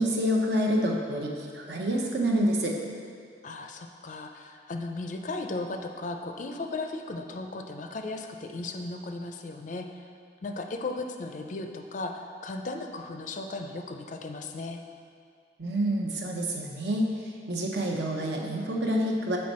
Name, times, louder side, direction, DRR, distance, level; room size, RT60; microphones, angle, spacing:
voice 1, 0.0-2.8 15.6-17.0 17.5-19.4, equal, 70° right, -1 dB, 0.9 m, -27 dB
voice 2, 3.4-10.1 10.4-14.8, left 2 dB, 45° left, 4 dB, 0.4 m, -36 dB
7.6 x 4.4 x 4.2 m, 2.3 s
head